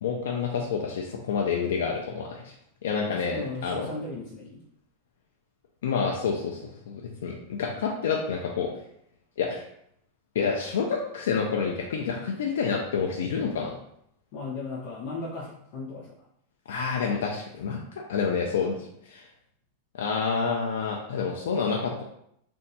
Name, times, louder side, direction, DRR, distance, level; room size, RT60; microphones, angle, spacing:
voice 1, 0.0-2.5 2.8-3.9 5.8-8.7 9.4-9.6 10.3-13.7 16.7-18.8 19.1-19.3 20.0-22.0, left 5 dB, 85° left, 0 dB, 0.4 m, -28 dB
voice 2, 3.1-4.6 14.3-16.3, left 3 dB, 40° left, -5 dB, 0.5 m, -36 dB
2.6 x 2.2 x 4.0 m, 0.73 s
supercardioid pair, 170°, 0 cm